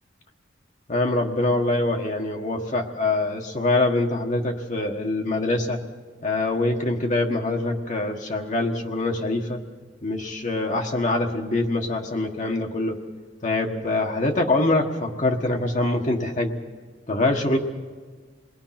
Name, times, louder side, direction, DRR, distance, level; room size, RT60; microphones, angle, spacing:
voice 1, 0.9-5.8 6.2-9.6 10.0-13.0 13.4-16.5 17.1-17.6, left 2 dB, 40° left, 2 dB, 1.5 m, -24 dB
27.5 x 20.5 x 5.9 m, 1.5 s
head